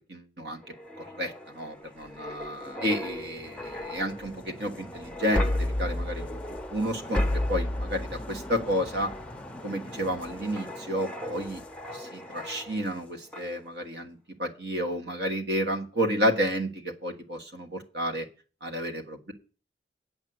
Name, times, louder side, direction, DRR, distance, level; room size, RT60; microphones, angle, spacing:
voice 1, 0.1-0.6 1.0-9.1 9.6-11.6 11.9-18.2 18.6-19.3, equal, 65° right, 3 dB, 1.4 m, -31 dB
sound 1, 0.6-13.0 13.3-13.6, left 1 dB, 5° left, 0.7 m, -34 dB
9.1 x 5.3 x 7.8 m, 0.38 s
head